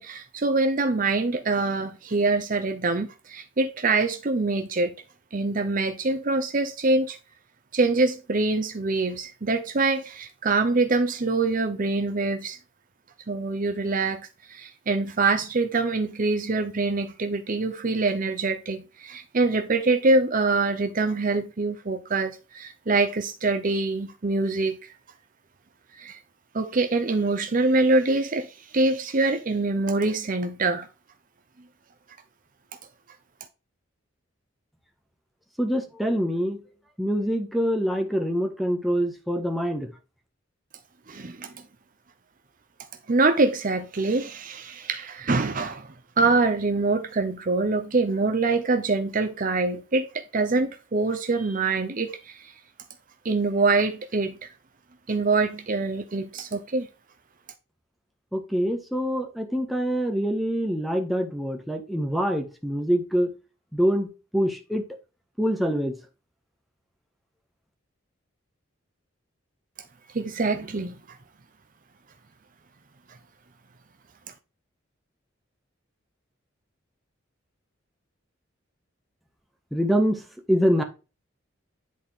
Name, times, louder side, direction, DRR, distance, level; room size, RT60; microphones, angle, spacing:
voice 1, 0.0-4.9 5.3-7.2 7.7-12.6 13.3-24.9 26.0-26.2 26.5-30.9 41.1-41.5 43.1-52.5 53.2-54.5 55.1-56.9 70.1-71.2, right 3 dB, 45° right, 0.7 m, -25 dB
voice 2, 35.6-36.6 37.0-39.9 58.3-63.3 63.7-64.8 65.4-65.9 79.7-80.2 80.5-80.8, equal, ahead, 1.4 m, -25 dB
10.5 x 4.2 x 3.6 m
head